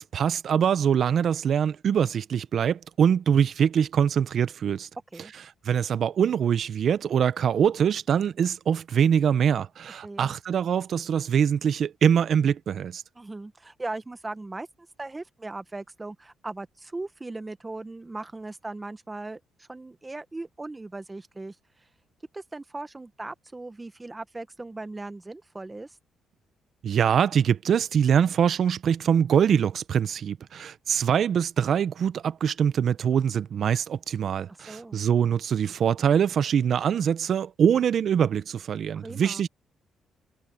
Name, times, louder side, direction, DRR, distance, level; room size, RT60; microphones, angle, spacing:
voice 1, 0.0-4.9 5.6-13.0 26.8-39.5, right 8 dB, 60° right, 0.8 m, -23 dB
voice 2, 10.0-10.4 13.1-21.6 22.3-26.0 34.5-35.0 38.9-39.4, right 2 dB, 20° right, 1.2 m, -38 dB
cardioid pair, 90°, 0 cm